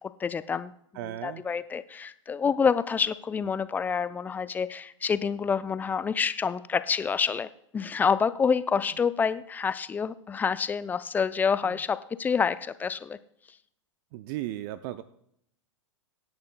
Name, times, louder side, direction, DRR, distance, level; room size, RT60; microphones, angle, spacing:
voice 1, 0.0-0.7 1.0-7.5 7.7-13.2, left 6 dB, 10° left, 15 dB, 0.4 m, -27 dB
voice 2, 0.9-1.4 14.1-15.0, right 14 dB, 40° right, 14 dB, 0.5 m, -35 dB
25.5 x 10.5 x 2.2 m, 0.71 s
figure-of-eight pair, 105°, 16 cm